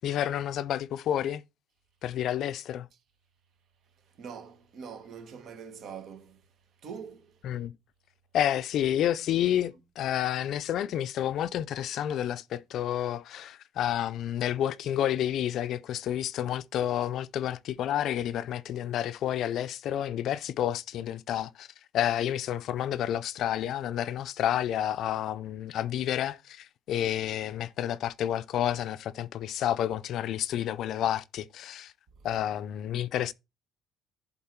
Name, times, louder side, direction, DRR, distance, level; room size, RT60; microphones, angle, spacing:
voice 1, 0.0-1.4 2.0-2.9 7.4-7.7 8.3-21.7 21.9-31.9 32.2-33.3, left 11 dB, 60° left, 0.4 m, -30 dB
voice 2, 4.2-6.4 6.8-7.4, right 6 dB, 55° right, 1.4 m, -43 dB
11.0 x 3.9 x 4.4 m
cardioid pair, 140°, 0 cm